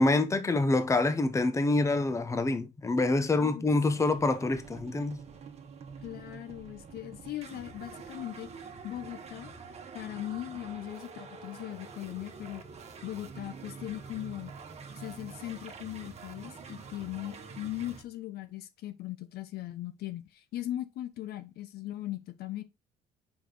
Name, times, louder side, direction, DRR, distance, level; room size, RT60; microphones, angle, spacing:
voice 1, 0.0-5.2, left 2 dB, 15° left, 0.8 m, -26 dB
sound 1, 3.9-18.0, right 5 dB, 40° right, 1.3 m, -46 dB
voice 2, 6.0-8.5 8.8-9.6 9.9-12.6 13.0-14.5 15.0-22.6, left 14 dB, 70° left, 0.8 m, -39 dB
5.1 x 5.0 x 3.8 m
cardioid pair, 110°, 17 cm